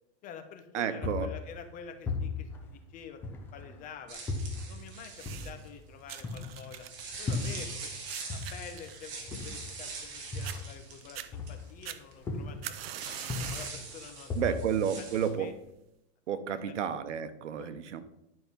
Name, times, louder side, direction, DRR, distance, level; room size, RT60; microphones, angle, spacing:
voice 1, 0.2-3.2 3.5-4.2 4.7-6.9 7.2-7.9 8.3-13.1 13.5-14.6 15.0-15.5 16.5-16.6 17.5-17.7, left 7 dB, 25° left, 7 dB, 1.1 m, -48 dB
voice 2, 0.7-1.3 14.4-15.5 16.3-18.0, right 8 dB, 85° right, 11 dB, 1.2 m, -31 dB
sound 1, 1.0-3.8 4.3-8.0 8.3-11.9 12.3-12.8 13.2-15.5, left 3 dB, 5° left, 0.3 m, -37 dB
sound 2, 4.1-5.7 6.7-11.8 12.1-12.2 12.9-15.3, right 4 dB, 30° right, 2.4 m, -43 dB
sound 3, 5.1-5.7 6.1-10.1 10.4-10.6 11.0-11.3 11.9-13.8 14.3-14.6 15.4-15.5, right 12 dB, 55° right, 0.9 m, -43 dB
11.0 x 5.9 x 5.3 m, 0.83 s
supercardioid pair, 150°, 35 cm